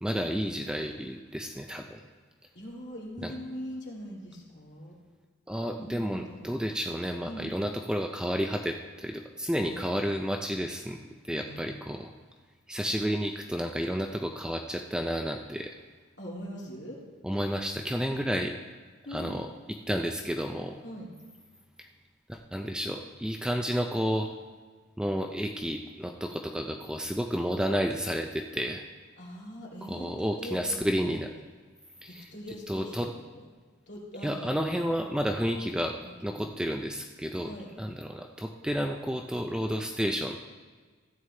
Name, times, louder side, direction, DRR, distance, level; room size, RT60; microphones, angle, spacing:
voice 1, 0.0-2.0 3.2-3.3 5.5-11.0 11.2-12.1 12.7-15.8 17.2-18.6 19.1-19.5 19.9-20.8 21.8-21.9 22.3-24.3 25.0-28.8 29.8-31.3 32.0-32.3 32.7-33.1 34.2-37.5 37.8-40.4, equal, 5° right, 3 dB, 0.4 m, -31 dB
voice 2, 2.5-5.0 5.8-6.6 7.2-7.5 9.7-9.8 11.4-11.7 16.2-17.0 19.0-19.4 20.8-21.1 29.2-31.2 32.1-33.5 33.9-34.7 36.0-36.5 37.4-37.7, equal, 60° left, -3 dB, 2.6 m, -42 dB
14.0 x 9.1 x 3.3 m, 1.5 s
head